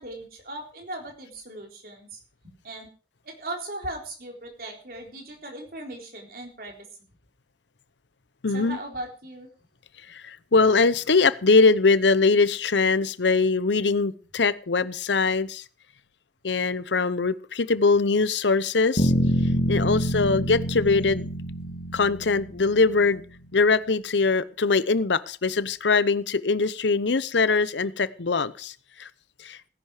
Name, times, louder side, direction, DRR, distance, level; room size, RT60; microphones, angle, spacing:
voice 1, 0.0-2.2 2.6-2.9 3.2-6.8 8.5-9.5, right 1 dB, 55° right, 2 dB, 3.8 m, -38 dB
voice 2, 8.4-8.8 10.2-15.6 16.4-19.1 19.7-21.3 21.9-23.2 23.5-28.7 29.0-29.1 29.4-29.6, left 4 dB, 90° left, 16 dB, 0.8 m, -22 dB
sound 1, 19.0-23.0, equal, 55° left, 2.1 m, -26 dB
17.0 x 10.5 x 4.9 m, 0.40 s
head